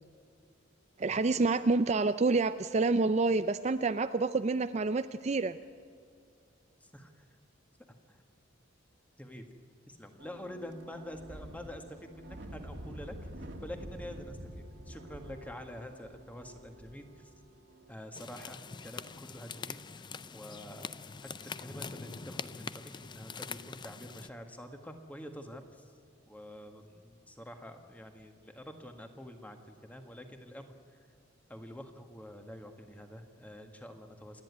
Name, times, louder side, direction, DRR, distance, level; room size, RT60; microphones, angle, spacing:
voice 1, 1.0-5.6, right 3 dB, 35° right, 11 dB, 0.4 m, -28 dB
voice 2, 6.9-7.2 8.1-8.2 9.2-9.5 9.9-13.1 13.6-17.3 17.9-20.0 20.3-20.9 21.4-25.6 26.3-30.7 31.5-34.4, equal, 10° left, 5 dB, 1.6 m, -47 dB
sound 1, 10.2-17.9, equal, 60° right, 2.1 m, -48 dB
sound 2, 18.1-24.3, left 5 dB, 25° left, 0.5 m, -44 dB
28.0 x 10.5 x 9.6 m, 2.4 s
head